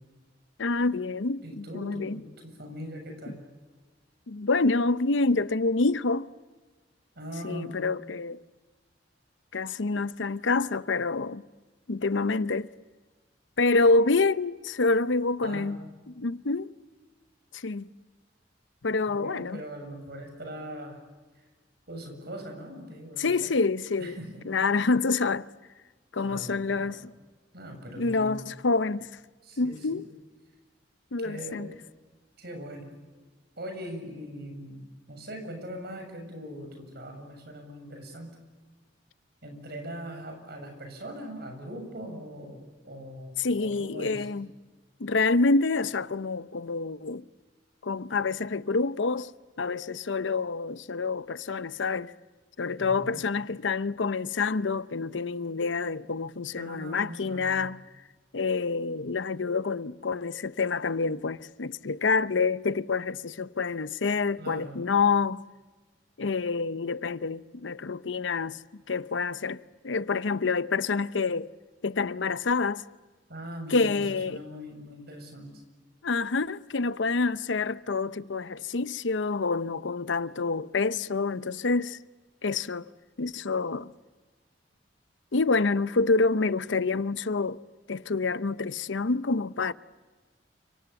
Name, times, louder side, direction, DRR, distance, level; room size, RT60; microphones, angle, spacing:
voice 1, 0.6-2.2 4.3-6.3 7.4-8.4 9.5-11.4 11.9-12.7 13.6-15.8 16.2-16.7 17.5-17.9 18.8-19.6 23.2-24.2 24.5-25.5 26.1-27.0 28.0-29.1 29.6-30.1 31.1-31.7 43.4-44.5 45.0-47.2 47.8-49.3 49.6-52.1 52.6-57.8 58.3-65.4 66.2-68.6 68.9-69.6 69.8-71.5 71.8-72.8 73.7-74.4 76.0-82.0 82.4-82.9 83.2-83.9 85.3-87.6 87.9-89.7, left 3 dB, 85° left, 0.8 m, -27 dB
voice 2, 1.4-3.4 7.2-7.8 15.4-15.7 19.1-21.0 21.9-23.5 24.0-24.4 26.2-27.0 27.5-28.3 29.4-30.0 31.2-31.7 32.4-32.9 33.6-34.8 35.1-38.4 39.4-44.3 52.8-53.3 56.6-57.6 64.4-64.8 73.3-75.6, equal, 60° right, 7.4 m, -41 dB
29.5 x 26.0 x 7.1 m
head